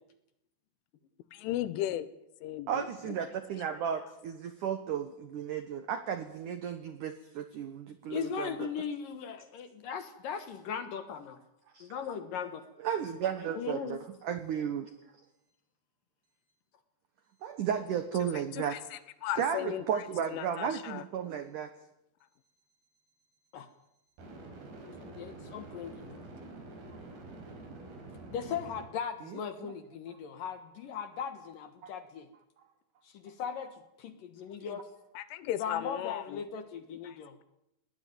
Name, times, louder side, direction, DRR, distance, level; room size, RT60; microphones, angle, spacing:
voice 1, 1.3-2.1 2.4-3.2 18.5-20.0 20.3-21.0 35.2-36.4 37.0-37.4, left 13 dB, 85° left, 15 dB, 3.6 m, -36 dB
voice 2, 2.7-8.7 11.7-11.9 12.8-14.9 17.4-18.8 19.4-21.7 31.8-31.9, right 8 dB, 80° right, 10 dB, 1.8 m, -34 dB
voice 3, 8.1-11.4 11.8-12.6 13.5-14.0 23.5-23.7 25.0-26.2 28.3-32.3 33.0-34.9 35.6-37.4, left 7 dB, 65° left, 10 dB, 2.3 m, -38 dB
sound 1, 24.2-28.8, right 2 dB, 55° right, 6.4 m, -47 dB
20.5 x 19.0 x 9.4 m, 0.83 s
omnidirectional pair, 5.5 m